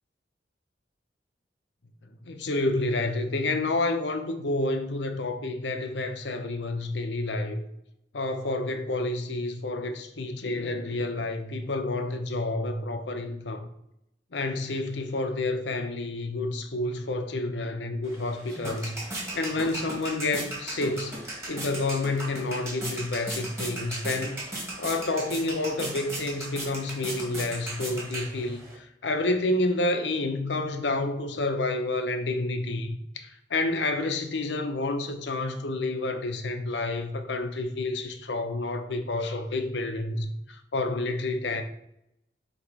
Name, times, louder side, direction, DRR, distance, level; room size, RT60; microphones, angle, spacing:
voice 1, 2.2-7.6 8.1-13.7 14.3-24.4 24.8-41.6, left 2 dB, 90° left, 0.8 m, -29 dB
sound 1, 18.0-28.8, right 1 dB, 15° right, 1.8 m, -37 dB
7.1 x 3.0 x 4.7 m
head